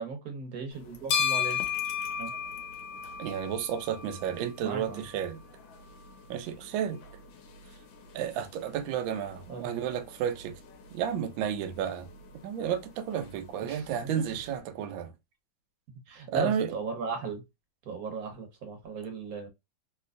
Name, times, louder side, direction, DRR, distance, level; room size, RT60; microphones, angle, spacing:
voice 1, 0.0-1.6 2.2-2.3 4.6-5.0 9.5-9.7 13.6-14.2 16.1-17.4 17.8-19.5, right 4 dB, 55° right, 1.2 m, -36 dB
sound 1, 0.7-14.6, left 7 dB, 90° left, 1.4 m, -37 dB
voice 2, 3.2-5.4 6.3-7.0 8.1-10.6 10.9-12.1 12.4-15.1 16.3-16.8, right 9 dB, 80° right, 1.3 m, -32 dB
3.4 x 2.9 x 2.3 m
omnidirectional pair, 2.1 m